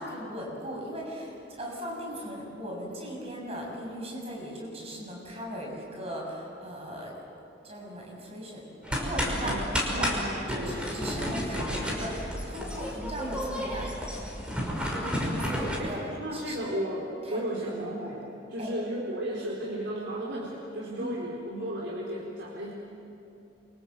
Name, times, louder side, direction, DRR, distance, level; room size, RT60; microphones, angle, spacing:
voice 1, 0.0-7.1 7.6-8.6 8.9-9.5 9.9-10.1 10.5-13.9 14.3-16.0 16.3-16.7 17.3-17.7 18.6-18.7 21.0-21.2, equal, 35° right, -2 dB, 7.0 m, -38 dB
sound 1, 8.8-15.8, equal, 5° right, 5.5 m, -31 dB
voice 2, 9.4-10.9 11.5-11.7 14.4-14.8 15.8-15.9 16.2-22.7, equal, 85° right, -3 dB, 4.0 m, -35 dB
28.5 x 25.5 x 7.9 m, 2.8 s
head